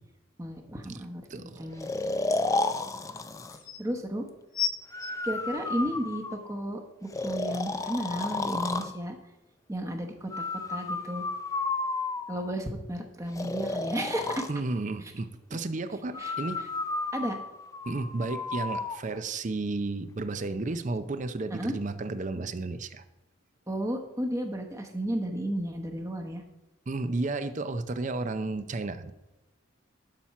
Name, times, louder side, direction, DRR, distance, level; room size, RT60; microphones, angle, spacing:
voice 1, 0.4-1.2 1.6-1.9 3.8-4.3 5.2-9.2 9.7-10.4 10.7-11.2 12.3-14.5 16.2-16.3 17.1-17.4 21.5-21.7 23.7-26.4, right 1 dB, 15° right, 4 dB, 1.0 m, -33 dB
sound 1, 1.2-1.3 2.9-3.0 3.3-3.8 4.5-6.2 6.9-7.0, left 8 dB, 70° left, 1.1 m, -33 dB
voice 2, 1.3-1.8 14.5-16.6 17.8-23.0 26.9-29.1, right 3 dB, 40° right, 11 dB, 0.5 m, -33 dB
Breathing, 1.8-3.6 4.9-6.6 7.1-8.9 10.3-12.6 13.3-14.5 16.1-19.0, left 3 dB, 15° left, 0.4 m, -32 dB
11.5 x 4.4 x 5.8 m, 1.1 s
head